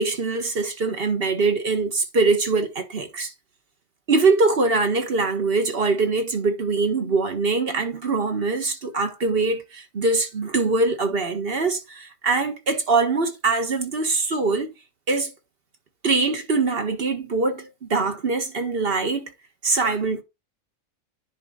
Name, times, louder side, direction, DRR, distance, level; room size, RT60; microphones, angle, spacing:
voice 1, 0.0-3.3 4.1-14.7 15.1-15.3 16.0-19.3 19.6-20.2, right 3 dB, 45° right, 1.7 m, -23 dB
10.5 x 3.8 x 4.0 m
omnidirectional pair, 1.4 m